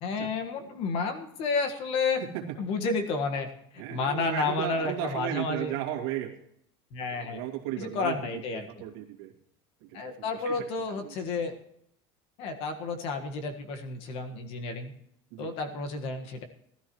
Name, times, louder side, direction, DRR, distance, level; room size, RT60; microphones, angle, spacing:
voice 1, 0.0-2.2 2.6-3.5 3.7-5.7 6.9-7.4 7.8-8.7 9.9-11.6 12.4-14.9 15.4-16.4, left 4 dB, 50° left, 6 dB, 1.6 m, -31 dB
voice 2, 2.2-2.6 3.8-6.3 7.1-8.4 8.8-9.3 9.8-11.1 15.3-15.5, right 12 dB, 75° right, 1 dB, 2.3 m, -35 dB
18.5 x 13.0 x 3.1 m, 0.72 s
cardioid pair, 160°, 13 cm